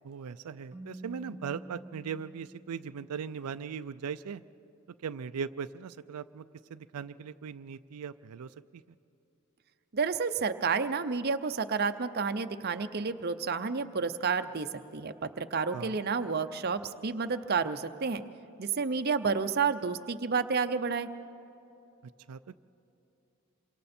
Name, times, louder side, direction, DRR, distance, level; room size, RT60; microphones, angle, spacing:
voice 1, 0.0-4.4 5.0-8.8 15.7-16.0 22.3-22.6, right 6 dB, 90° right, 12 dB, 0.4 m, -39 dB
Keyboard (musical), 0.7-3.5, right 1 dB, 15° right, 1.9 m, -48 dB
voice 2, 9.9-14.7 14.9-18.2 18.6-21.1, right 5 dB, 45° right, 9 dB, 0.6 m, -30 dB
27.5 x 25.0 x 4.3 m, 2.9 s
head